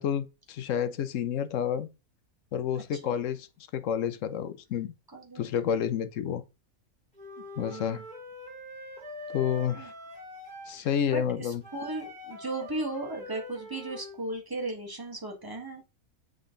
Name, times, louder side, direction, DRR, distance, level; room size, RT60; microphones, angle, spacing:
voice 1, 0.0-1.9 2.5-3.5 3.7-4.9 5.4-6.4 7.6-8.0 9.3-9.9 10.7-11.6, left 8 dB, 65° left, 1.0 m, -29 dB
voice 2, 5.1-5.4 7.6-8.0 9.7-9.9 10.7-15.8, right 2 dB, 15° right, 1.6 m, -36 dB
Wind instrument woodwind instrument, 7.1-10.8 11.6-14.2, left 1 dB, 5° left, 3.8 m, -43 dB
7.4 x 3.9 x 3.8 m
omnidirectional pair, 1.5 m